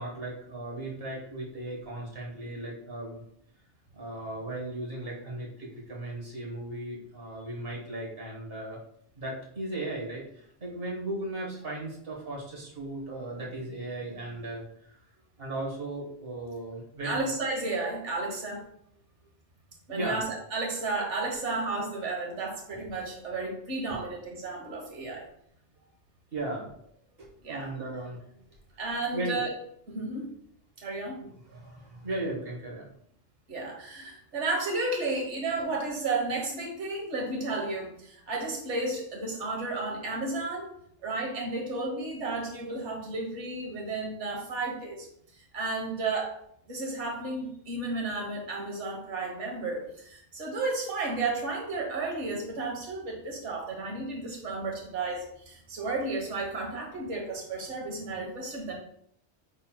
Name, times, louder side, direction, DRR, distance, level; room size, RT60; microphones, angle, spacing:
voice 1, 0.0-3.2 3.9-8.8 9.1-15.0 15.4-17.3 19.9-20.2 23.4-23.5 23.8-24.0 25.8-25.9 26.3-26.7 27.2-28.2 29.1-29.4 31.2-32.9 35.6-35.7, right 1 dB, 55° right, -3 dB, 1.5 m, -37 dB
voice 2, 17.0-18.6 19.9-25.3 27.4-27.7 28.8-29.5 29.9-30.3 30.8-31.2 33.5-40.7 41.0-45.1 45.3-46.3 46.7-58.7, right 3 dB, 80° right, 0 dB, 1.5 m, -33 dB
5.6 x 3.9 x 2.3 m, 0.70 s
omnidirectional pair, 1.2 m